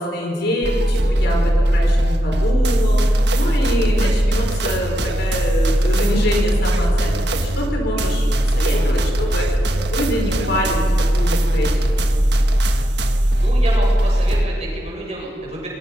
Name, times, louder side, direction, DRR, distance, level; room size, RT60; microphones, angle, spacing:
voice 1, 0.0-8.3 8.5-12.0, equal, 55° left, 0 dB, 5.0 m, -25 dB
sound 1, 0.6-14.5, right 1 dB, 60° right, 1.4 m, -18 dB
voice 2, 13.4-15.7, right 1 dB, 35° right, -4 dB, 7.5 m, -29 dB
27.5 x 23.0 x 5.6 m, 2.4 s
head